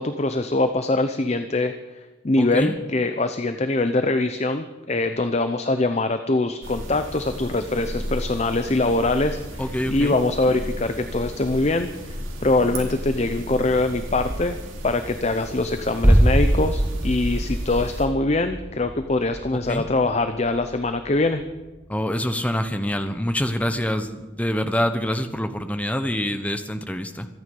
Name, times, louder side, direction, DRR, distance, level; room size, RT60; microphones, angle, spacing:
voice 1, 0.0-1.7 2.2-14.6 14.8-21.4, left 2 dB, 30° left, 9 dB, 0.6 m, -23 dB
voice 2, 2.4-2.7 9.6-10.1 19.7-19.9 21.9-27.3, equal, 5° left, 9 dB, 1.0 m, -26 dB
sound 1, 6.6-18.1, equal, 80° right, 3.6 m, -34 dB
sound 2, 16.0-21.8 22.0-22.1, right 1 dB, 10° right, 0.5 m, -23 dB
25.5 x 9.6 x 5.4 m, 1.2 s
head